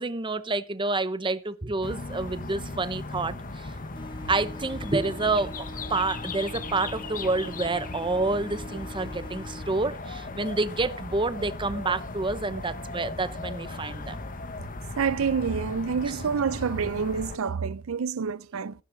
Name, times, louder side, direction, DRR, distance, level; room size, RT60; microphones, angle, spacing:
voice 1, 0.0-3.7 4.3-14.2, right 3 dB, 25° right, 0.8 m, -28 dB
sound 1, 1.8-17.4, left 3 dB, 40° left, 1.2 m, -37 dB
sound 2, 3.9-9.9, left 1 dB, 20° left, 1.7 m, -45 dB
voice 2, 15.0-18.7, right 6 dB, 80° right, 0.5 m, -27 dB
15.0 x 9.5 x 3.9 m
head